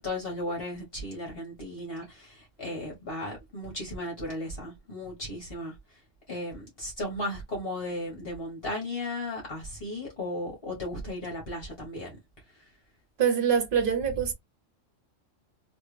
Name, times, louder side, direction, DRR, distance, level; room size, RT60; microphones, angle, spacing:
voice 1, 0.0-6.0 6.3-12.2 12.5-12.7, left 1 dB, 50° left, 1.4 m, -35 dB
voice 2, 13.2-14.3, right 7 dB, 50° right, 1.0 m, -24 dB
3.3 x 2.4 x 3.2 m
omnidirectional pair, 1.3 m